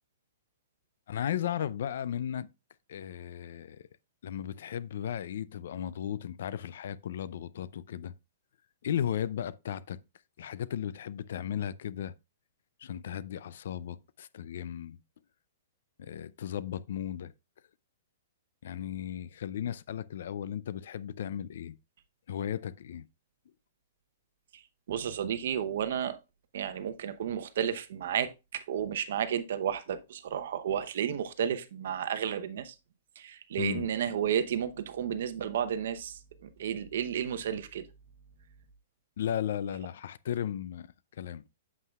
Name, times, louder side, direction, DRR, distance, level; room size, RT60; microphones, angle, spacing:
voice 1, 1.1-2.5 2.9-3.9 4.2-8.1 8.8-10.0 10.4-12.1 12.8-15.0 16.0-17.3 18.6-21.8 22.3-23.1 33.6-33.9 39.2-40.9 41.1-41.4, left 9 dB, 60° left, 0.4 m, -35 dB
voice 2, 24.9-26.2 26.5-32.7 33.2-37.8, right 9 dB, 55° right, 0.8 m, -32 dB
8.3 x 7.5 x 2.4 m
hypercardioid pair, 170°, 0 cm